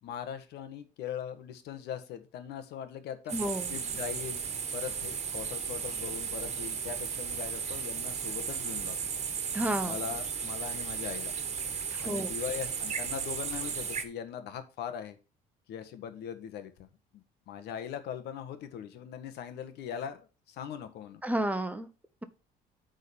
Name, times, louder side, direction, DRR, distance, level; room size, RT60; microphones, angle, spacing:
voice 1, 0.0-3.3 3.7-4.4 4.7-9.0 9.8-11.3 12.0-15.2 15.7-16.7 17.1-21.2, left 8 dB, 80° left, 10 dB, 1.5 m, -40 dB
voice 2, 3.3-3.7 9.5-10.0 11.9-12.3 21.2-21.9, right 1 dB, 10° right, 10 dB, 0.9 m, -31 dB
sound 1, 3.3-14.0, right 6 dB, 40° right, 1.5 m, -35 dB
8.3 x 4.1 x 7.0 m, 0.32 s
cardioid pair, 110°, 17 cm